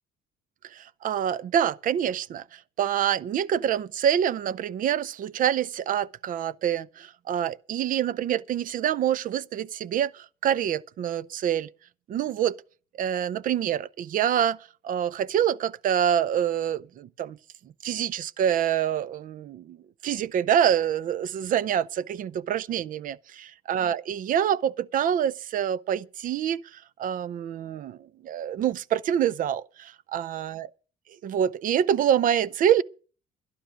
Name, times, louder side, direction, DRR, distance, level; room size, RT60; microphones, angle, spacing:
voice 1, 0.7-11.7 12.1-12.6 13.0-14.6 14.8-17.4 17.8-19.8 20.0-30.7 31.2-32.8, right 9 dB, 55° right, 0.6 m, -26 dB
12.0 x 11.5 x 6.3 m
cardioid pair, 110°, 17 cm